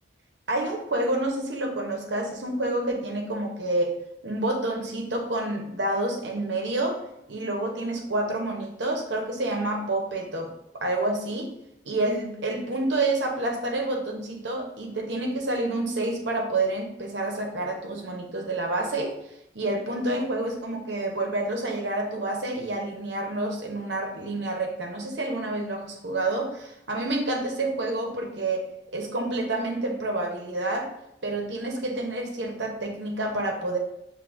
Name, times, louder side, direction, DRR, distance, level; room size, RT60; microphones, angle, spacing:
voice 1, 0.5-3.9 4.2-7.0 7.3-11.5 11.8-19.1 19.5-30.9 31.2-33.8, right 2 dB, 85° right, 1 dB, 0.9 m, -28 dB
7.0 x 2.7 x 2.6 m, 0.81 s
head